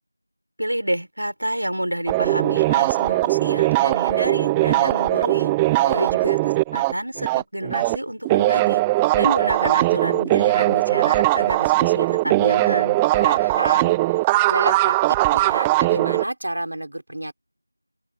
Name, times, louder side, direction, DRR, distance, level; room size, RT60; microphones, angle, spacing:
voice 1, 0.6-8.8 9.1-13.0, right 1 dB, 60° right, 5.0 m, -29 dB
sound 1, 2.1-8.0 8.2-16.2, right 19 dB, 5° right, 0.3 m, -20 dB
voice 2, 5.8-6.1 13.1-14.2 14.5-17.3, right 1 dB, 40° right, 5.0 m, -30 dB
figure-of-eight pair, 175°, 0 cm